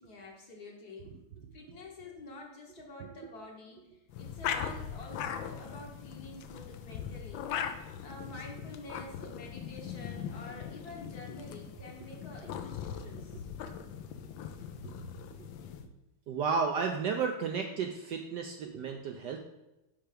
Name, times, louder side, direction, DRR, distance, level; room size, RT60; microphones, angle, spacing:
voice 1, 0.0-1.2 1.5-7.7 8.0-13.5, left 2 dB, 50° left, 0 dB, 1.5 m, -48 dB
sound 1, 4.1-15.9, left 8 dB, 75° left, 1.3 m, -40 dB
voice 2, 16.3-19.5, right 5 dB, 75° right, 4 dB, 1.0 m, -33 dB
5.7 x 5.7 x 5.0 m, 0.97 s
omnidirectional pair, 2.3 m